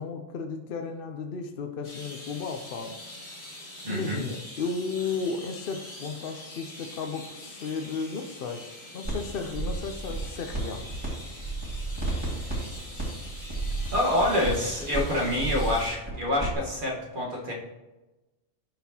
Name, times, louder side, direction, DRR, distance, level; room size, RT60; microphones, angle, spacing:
voice 1, 0.0-3.1 3.9-8.7 8.9-10.9, left 5 dB, 60° left, 5 dB, 0.6 m, -34 dB
sound 1, 1.8-15.9, left 1 dB, 85° left, 2.8 m, -44 dB
voice 2, 3.8-4.2 13.9-17.5, left 1 dB, 40° right, -3 dB, 1.5 m, -27 dB
sound 2, 9.0-9.2 9.5-11.1 11.3-16.5, right 3 dB, 20° right, 2.1 m, -32 dB
12.0 x 4.2 x 2.8 m, 1.1 s
omnidirectional pair, 1.4 m